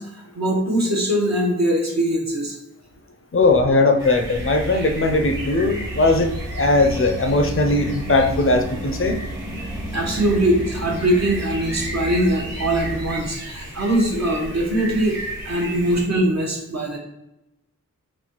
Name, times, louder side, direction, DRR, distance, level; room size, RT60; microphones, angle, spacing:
voice 1, 0.0-2.5 9.9-15.2 15.4-17.0, right 1 dB, 55° right, -1 dB, 0.9 m, -22 dB
voice 2, 3.3-9.2, left 2 dB, 45° left, 5 dB, 0.5 m, -19 dB
sound 1, 4.0-16.0, right 1 dB, 35° right, 1.2 m, -35 dB
sound 2, 4.2-13.1, equal, 15° right, 0.7 m, -33 dB
3.9 x 2.2 x 2.9 m, 0.90 s
wide cardioid pair, 75°, 32 cm